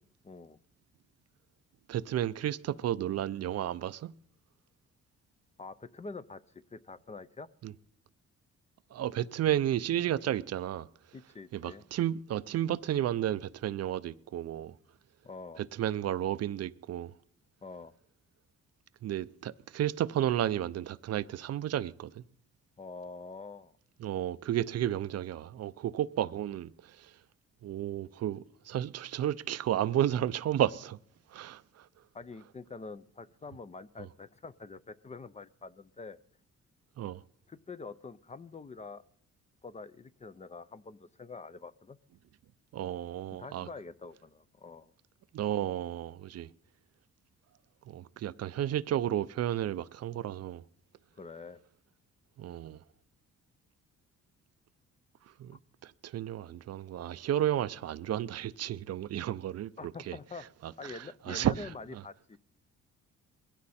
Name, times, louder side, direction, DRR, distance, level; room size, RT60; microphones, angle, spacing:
voice 1, 0.2-0.6 5.6-7.5 11.1-11.8 15.2-15.6 17.6-17.9 22.8-23.7 32.1-36.2 37.5-39.0 39.6-42.0 43.4-44.9 51.2-51.6 55.5-55.6 59.8-60.5 60.8-62.4, left 4 dB, 25° left, 0.5 m, -46 dB
voice 2, 1.9-4.1 7.6-7.7 8.9-10.9 11.5-14.8 15.6-17.1 19.0-22.2 24.0-27.2 27.6-31.0 31.3-31.9 34.0-34.1 37.0-37.2 42.7-43.7 45.3-46.5 47.9-50.6 52.4-52.8 55.4-60.2 60.6-62.0, right 11 dB, 55° right, 0.5 m, -32 dB
21.0 x 16.0 x 4.3 m
cardioid pair, 90°, 30 cm